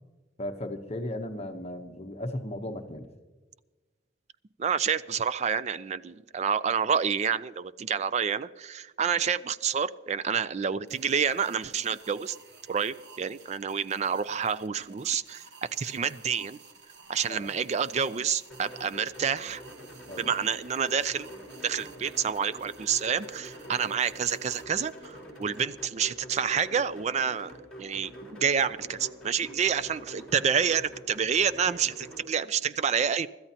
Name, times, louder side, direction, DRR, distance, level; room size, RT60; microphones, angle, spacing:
voice 1, 0.4-3.1 17.3-17.5 20.1-20.3, left 1 dB, 35° left, 0.9 m, -36 dB
voice 2, 4.6-12.4 12.7-15.4 15.8-16.6 17.1-19.6 20.2-21.3 21.6-27.5 27.8-33.3, right 7 dB, 35° right, 0.4 m, -28 dB
sound 1, 10.9-25.6, right 4 dB, 65° right, 1.2 m, -53 dB
sound 2, 18.5-32.2, equal, 5° left, 4.3 m, -46 dB
25.0 x 13.5 x 2.9 m
head